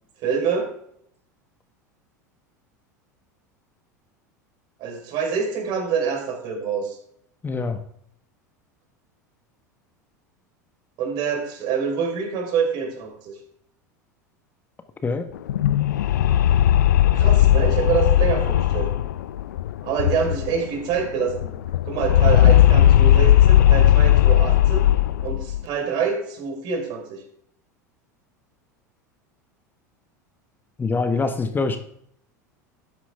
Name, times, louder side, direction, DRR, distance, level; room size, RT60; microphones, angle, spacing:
voice 1, 0.2-0.7 4.8-7.0 11.0-13.3 17.1-18.9 19.8-21.5 21.8-24.9 25.2-27.2, right 6 dB, 50° right, 2 dB, 4.4 m, -26 dB
voice 2, 7.4-7.8 15.0-15.3 30.8-31.8, left 4 dB, 20° left, 8 dB, 1.4 m, -24 dB
sound 1, 15.4-20.7 20.9-21.0 21.3-25.6, left 12 dB, 70° left, 0.5 m, -17 dB
13.0 x 9.9 x 3.6 m, 0.69 s
figure-of-eight pair, 80°, 10 cm